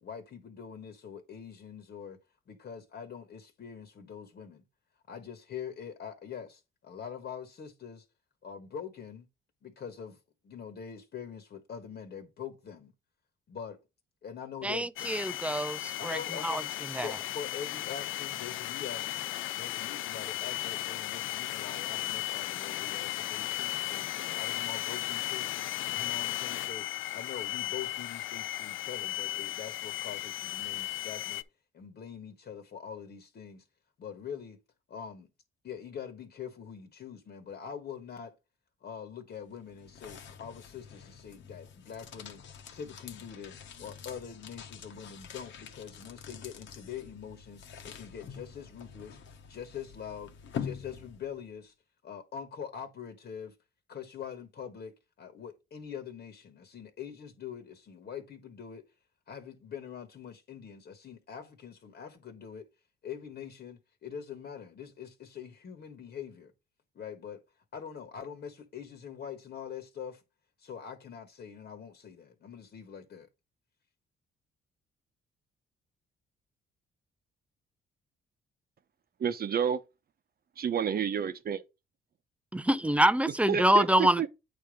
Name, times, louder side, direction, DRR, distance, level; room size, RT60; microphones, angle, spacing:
voice 1, 0.0-2.2 2.5-4.6 5.1-8.0 8.4-9.3 9.6-10.2 10.4-12.9 13.5-13.8 14.2-15.1 16.0-16.7 16.9-25.5 25.9-31.4 31.7-33.6 34.0-34.6 34.9-35.3 35.6-38.3 38.8-42.4 42.7-49.2 49.5-50.3 50.6-51.7 52.0-53.5 53.9-58.8 59.3-62.7 63.0-66.5 66.9-67.4 67.7-70.2 70.6-73.3, left 7 dB, 55° left, 1.5 m, -44 dB
voice 2, 14.6-16.2 16.4-16.6 17.0-17.1 82.5-84.3, right 1 dB, 5° right, 0.5 m, -26 dB
sound 1, 15.0-31.4, left 15 dB, 85° left, 0.5 m, -35 dB
sound 2, 39.3-51.5, left 7 dB, 70° left, 1.3 m, -45 dB
voice 3, 79.2-79.8 80.6-81.6 83.5-84.3, right 7 dB, 50° right, 0.9 m, -29 dB
8.8 x 3.5 x 5.0 m
cardioid pair, 90°, 20 cm